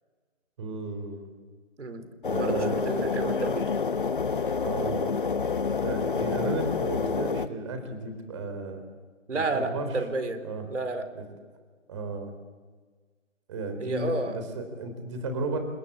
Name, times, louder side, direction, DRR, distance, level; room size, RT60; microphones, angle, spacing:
voice 1, 0.6-1.3 2.3-2.8 4.6-5.2 5.8-8.8 9.3-9.9 10.4-10.6 11.9-12.3 13.5-15.6, right 3 dB, 25° right, 7 dB, 3.9 m, -34 dB
sound 1, 2.2-7.5, left 5 dB, 40° left, 1.0 m, -28 dB
voice 2, 2.3-3.7 9.3-10.4 10.7-11.1 13.8-14.4, right 3 dB, 65° right, 9 dB, 4.4 m, -30 dB
28.0 x 21.0 x 8.6 m, 1.5 s
figure-of-eight pair, 165°, 39 cm